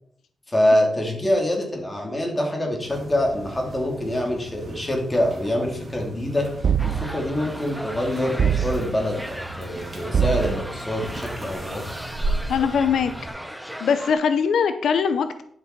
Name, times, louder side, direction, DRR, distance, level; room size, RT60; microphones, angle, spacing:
voice 1, 0.5-6.5 6.8-11.9, left 1 dB, 20° left, 1 dB, 2.7 m, -25 dB
sound 1, 2.8-13.3, right 2 dB, 35° right, 2.8 m, -36 dB
sound 2, 6.6-7.4 8.4-9.1 10.1-10.9, right 8 dB, 55° right, 0.5 m, -23 dB
sound 3, 6.8-14.1, equal, ahead, 0.8 m, -37 dB
voice 2, 12.5-13.1 13.8-15.4, left 6 dB, 80° left, 10 dB, 0.6 m, -21 dB
11.0 x 6.0 x 4.5 m, 0.68 s
cardioid pair, 115°, 0 cm